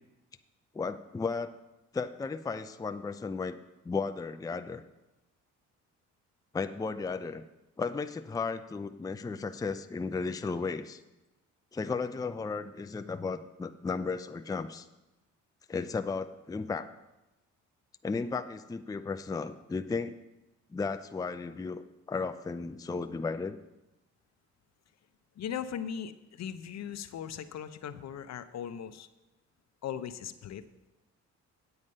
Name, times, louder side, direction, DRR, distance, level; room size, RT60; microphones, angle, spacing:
voice 1, 0.7-1.5 1.9-3.6 3.8-4.8 6.5-7.5 7.8-11.0 11.7-14.9 15.7-16.9 18.0-20.2 20.7-23.6, left 4 dB, 10° left, 9 dB, 0.5 m, -34 dB
voice 2, 25.4-29.1 29.8-30.6, left 8 dB, 60° left, 11 dB, 0.7 m, -38 dB
8.8 x 8.1 x 5.4 m, 1.0 s
cardioid pair, 90°, 30 cm